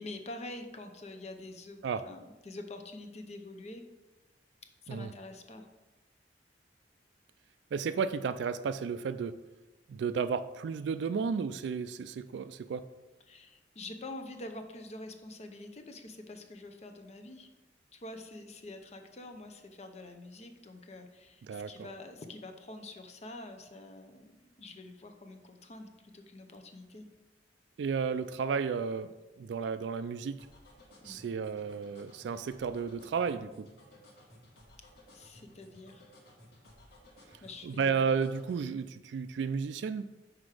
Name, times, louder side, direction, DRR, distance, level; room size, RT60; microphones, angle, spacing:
voice 1, 0.0-3.8 4.8-5.6 13.3-17.5 17.9-24.3 24.6-27.1 31.0-31.2 35.1-36.1 37.4-38.1, left 2 dB, 40° left, 6 dB, 0.7 m, -46 dB
voice 2, 7.7-9.4 9.9-12.9 21.5-21.9 27.8-30.4 31.0-33.7 37.6-40.1, right 6 dB, 80° right, 11 dB, 0.3 m, -33 dB
sound 1, 30.4-38.7, left 1 dB, 65° left, 1.7 m, -57 dB
6.1 x 4.8 x 4.9 m, 1.1 s
head